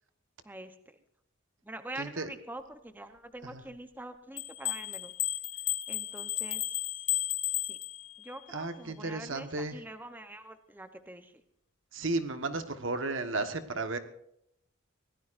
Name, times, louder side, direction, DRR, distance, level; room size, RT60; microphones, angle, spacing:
voice 1, 0.4-1.0 1.6-5.1 5.9-6.7 7.6-7.8 8.2-11.4, right 1 dB, 10° right, 8 dB, 0.8 m, -45 dB
voice 2, 2.0-2.3 3.5-3.6 8.5-9.8 11.9-14.0, right 3 dB, 75° right, 8 dB, 1.4 m, -34 dB
sound 1, 4.4-8.3, left 15 dB, 85° left, 1.3 m, -33 dB
23.5 x 17.0 x 2.6 m, 0.75 s
head